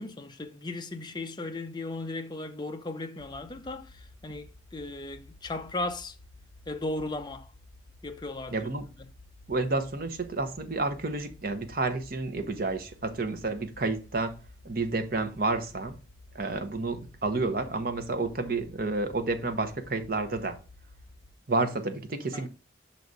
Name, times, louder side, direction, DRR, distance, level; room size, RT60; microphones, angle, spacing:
voice 1, 0.0-3.9 4.2-6.1 6.7-7.5 8.0-8.5 22.3-22.4, left 2 dB, 25° left, 0.6 m, -36 dB
sound 1, 3.2-21.4, left 2 dB, 70° left, 0.7 m, -53 dB
voice 2, 8.5-8.9 9.5-14.4 14.6-16.0 16.3-20.6 21.5-22.5, right 3 dB, 50° right, 0.9 m, -30 dB
5.8 x 4.1 x 4.9 m
head